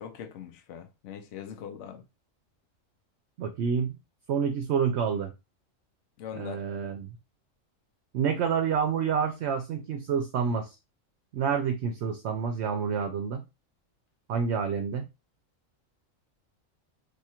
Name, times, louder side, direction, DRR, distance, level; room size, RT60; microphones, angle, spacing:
voice 1, 0.0-2.0 6.2-6.6, left 8 dB, 70° left, 0.9 m, -41 dB
voice 2, 3.4-4.0 4.3-5.3 6.3-7.1 8.1-10.8 11.3-13.4 14.3-15.1, right 6 dB, 65° right, 0.8 m, -28 dB
2.7 x 2.4 x 4.2 m
omnidirectional pair, 1.4 m